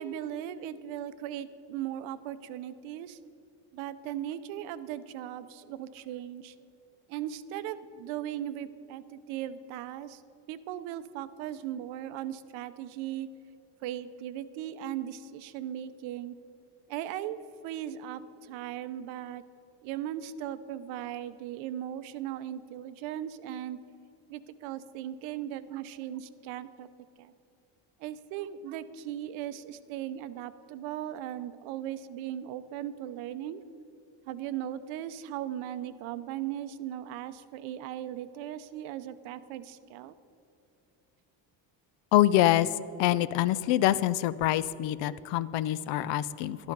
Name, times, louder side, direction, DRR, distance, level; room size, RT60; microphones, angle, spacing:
voice 1, 0.0-3.2 3.7-6.6 7.1-10.2 10.5-13.3 13.8-16.4 16.9-17.4 17.6-19.4 19.8-23.8 24.3-26.9 27.2-27.3 28.0-33.6 34.3-40.1, right 11 dB, 85° right, 13 dB, 0.7 m, -38 dB
voice 2, 42.1-42.7 43.0-46.7, left 13 dB, 70° left, 17 dB, 0.6 m, -25 dB
12.5 x 11.5 x 5.3 m, 2.7 s
cardioid pair, 155°, 46 cm